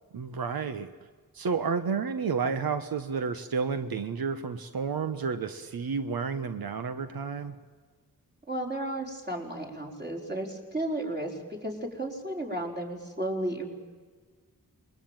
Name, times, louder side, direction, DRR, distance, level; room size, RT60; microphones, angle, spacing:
voice 1, 0.1-0.9 1.3-7.5, right 5 dB, 85° right, 9 dB, 1.3 m, -31 dB
voice 2, 8.5-13.7, right 1 dB, 30° right, 1 dB, 4.7 m, -33 dB
28.0 x 22.0 x 9.1 m, 1.5 s
wide cardioid pair, 125°, 35 cm